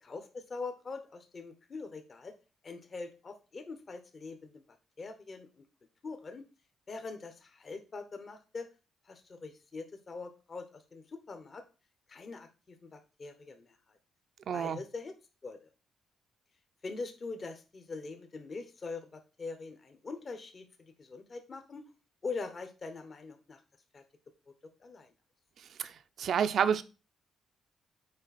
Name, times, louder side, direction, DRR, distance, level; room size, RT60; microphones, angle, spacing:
voice 1, 0.0-2.3 2.6-4.6 5.0-5.5 6.0-6.5 6.9-8.7 9.0-11.6 12.1-14.0 14.5-15.1 15.4-15.7 16.8-21.9 22.2-23.6 23.9-24.0 24.8-25.1, left 4 dB, 35° left, 0.9 m, -43 dB
voice 2, 14.5-14.8 25.8-25.9 26.2-26.8, right 8 dB, 60° right, 0.5 m, -28 dB
6.5 x 4.6 x 4.1 m
cardioid pair, 120°, 0 cm